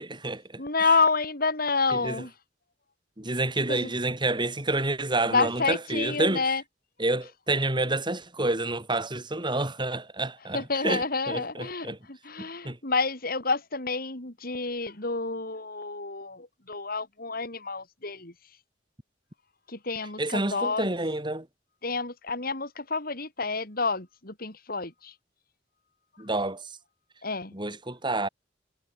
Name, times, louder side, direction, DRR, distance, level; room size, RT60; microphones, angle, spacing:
voice 1, 0.0-0.9 1.9-2.2 3.2-6.4 7.0-12.0 12.4-12.8 20.2-21.5 26.2-26.8 27.5-28.3, right 2 dB, 25° right, 4.7 m, -29 dB
voice 2, 0.6-2.3 3.7-3.9 5.2-6.6 10.5-18.3 19.7-20.9 21.8-25.1 27.2-27.5, left 4 dB, 50° left, 4.7 m, -29 dB
head